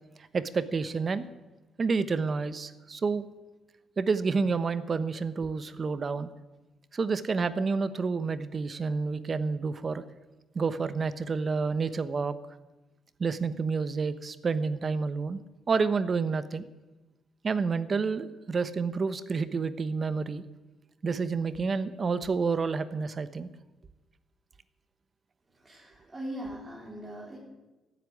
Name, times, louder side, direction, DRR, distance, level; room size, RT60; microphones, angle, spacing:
voice 1, 0.3-1.3 1.8-3.3 4.0-6.3 6.9-10.0 10.5-12.4 13.2-15.4 15.7-16.6 17.4-20.4 21.0-23.5, right 4 dB, 40° right, 13 dB, 1.0 m, -29 dB
voice 2, 25.6-27.4, right 1 dB, 20° right, -4 dB, 4.2 m, -40 dB
15.0 x 8.5 x 9.8 m, 1.1 s
cardioid pair, 90°, 0 cm